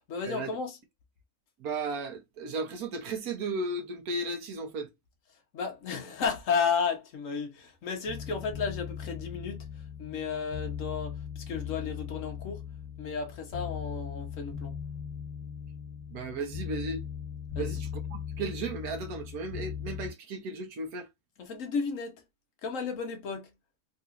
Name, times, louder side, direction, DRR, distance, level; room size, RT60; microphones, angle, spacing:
voice 1, 0.1-0.8 5.5-9.7 10.0-12.6 13.0-14.8 17.5-17.8 21.4-22.2 22.6-23.5, left 5 dB, 65° left, 1.3 m, -33 dB
voice 2, 1.6-4.9 16.1-17.0 17.6-21.1, right 3 dB, 85° right, 1.4 m, -35 dB
sound 1, 8.0-20.1, left 8 dB, 20° right, 1.5 m, -39 dB
3.9 x 2.9 x 2.4 m
omnidirectional pair, 1.5 m